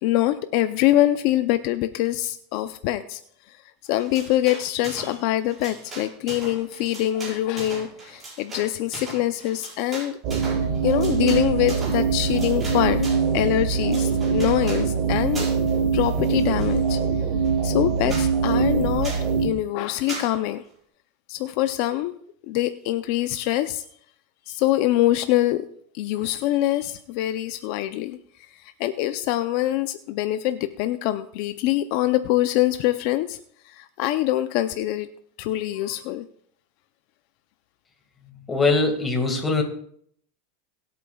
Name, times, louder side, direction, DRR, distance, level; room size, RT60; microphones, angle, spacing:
voice 1, 0.0-3.2 3.9-10.2 10.8-15.5 15.9-17.0 17.6-19.1 19.4-20.6 21.3-22.2 22.5-23.8 24.5-25.7 25.9-28.2 28.8-33.4 33.7-35.1 35.4-36.2, left 14 dB, 55° left, 10 dB, 0.5 m, -24 dB
sound 1, 3.9-5.2 5.5-13.3 13.7-14.9 15.3-15.7 16.0-17.0 17.4-17.5 17.8-17.9 18.1-18.3 19.0-19.3 20.1-20.3, right 2 dB, 20° right, 5.6 m, -38 dB
sound 2, 10.2-19.5, right 6 dB, 45° right, 1.6 m, -23 dB
voice 2, 38.5-39.6, left 3 dB, 15° left, 4 dB, 1.9 m, -21 dB
23.0 x 8.4 x 2.3 m, 0.64 s
supercardioid pair, 145°, 0 cm